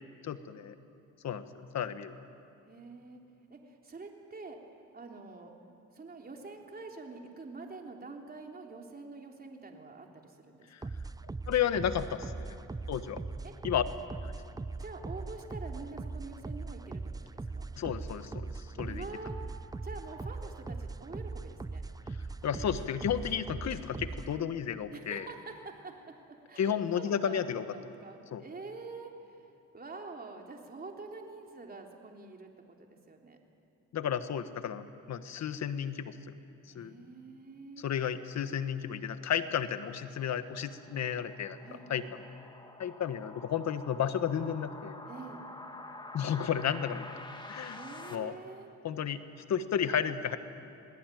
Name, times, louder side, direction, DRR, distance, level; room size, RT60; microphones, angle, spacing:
voice 1, 0.2-0.7 1.2-2.2 10.7-10.8 11.5-12.5 12.9-13.2 13.6-13.8 14.2-14.3 17.8-19.0 22.4-25.3 26.6-27.6 28.3-28.4 33.9-36.4 36.7-36.9 37.8-42.0 42.8-45.0 46.1-47.1 47.5-47.8 48.1-48.3 48.8-49.2 49.5-50.4, left 8 dB, 60° left, 11 dB, 1.5 m, -32 dB
voice 2, 2.6-3.2 3.5-4.6 4.9-5.5 5.9-10.9 13.4-13.5 14.8-17.6 18.8-19.4 19.8-21.8 24.9-27.4 27.7-29.5 29.7-33.4 36.7-37.9 41.6-42.1 45.1-45.5 47.7-48.7, right 3 dB, 30° right, 1 dB, 3.5 m, -46 dB
sound 1, 10.8-24.4, right 3 dB, 10° right, 0.6 m, -40 dB
sound 2, 39.7-48.1, left 2 dB, 15° left, 2.4 m, -48 dB
27.0 x 19.5 x 9.4 m, 2.6 s
cardioid pair, 90°, 30 cm